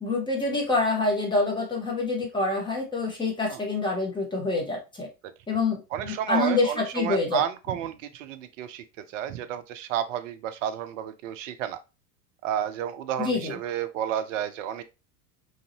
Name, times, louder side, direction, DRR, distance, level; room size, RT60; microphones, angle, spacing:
voice 1, 0.0-5.1 5.5-7.4 13.2-13.6, left 3 dB, 10° left, 1.0 m, -26 dB
voice 2, 5.9-8.8 9.1-11.8 12.4-14.8, right 10 dB, 55° right, 0.5 m, -31 dB
3.2 x 2.6 x 2.7 m
figure-of-eight pair, 80°, 48 cm